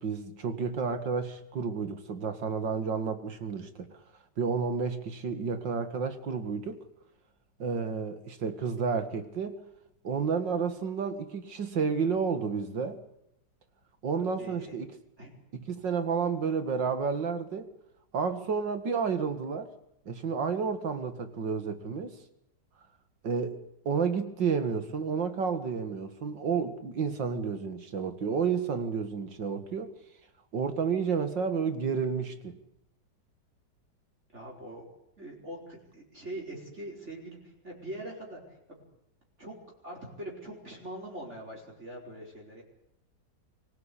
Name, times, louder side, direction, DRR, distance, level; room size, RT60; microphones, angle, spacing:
voice 1, 0.0-3.7 4.4-6.8 7.6-9.6 10.0-13.0 14.0-14.9 15.5-17.7 18.1-19.7 20.1-22.2 23.2-23.6 23.9-29.9 30.5-32.5, right 5 dB, 90° right, 9 dB, 2.7 m, -31 dB
voice 2, 14.1-14.7 15.2-15.4 34.3-34.9 35.2-38.4 38.7-38.8 39.4-39.5 39.8-42.6, right 1 dB, 40° right, -1 dB, 5.2 m, -42 dB
24.5 x 18.0 x 8.5 m, 0.80 s
omnidirectional pair, 1.9 m